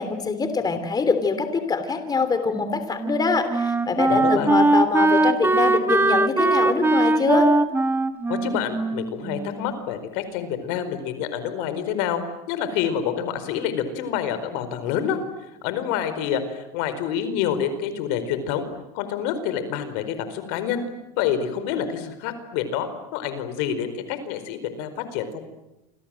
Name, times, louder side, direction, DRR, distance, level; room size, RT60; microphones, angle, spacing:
voice 1, 0.0-7.5, left 4 dB, 20° left, 9 dB, 3.2 m, -24 dB
Wind instrument woodwind instrument, 2.5-9.8, right 2 dB, 10° right, 1.6 m, -21 dB
voice 2, 4.1-4.6 8.3-12.2 12.5-15.2 15.6-18.7 18.9-20.8 21.2-25.4, left 8 dB, 75° left, 11 dB, 4.7 m, -27 dB
29.0 x 26.0 x 7.8 m, 0.95 s
supercardioid pair, 125°, 19 cm